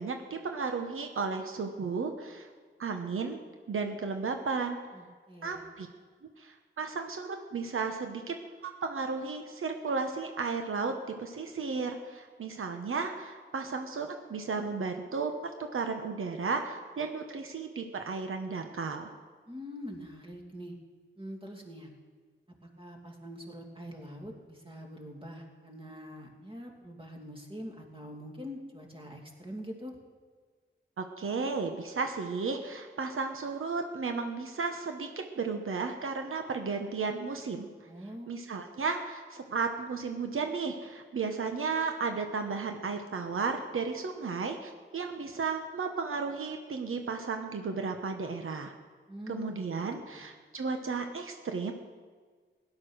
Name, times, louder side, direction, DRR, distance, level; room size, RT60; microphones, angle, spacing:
voice 1, 0.0-2.5 2.8-3.4 3.7-4.8 5.4-5.9 6.4-8.4 8.6-19.1 31.0-37.9 38.3-48.7 49.3-51.7, right 4 dB, 75° right, 5 dB, 1.1 m, -34 dB
voice 2, 4.9-5.6 19.5-20.8 21.2-21.9 22.6-30.0 37.9-38.4 49.1-50.2, equal, 25° right, 1 dB, 2.7 m, -44 dB
17.0 x 11.0 x 6.3 m, 1.5 s
wide cardioid pair, 100°, 21 cm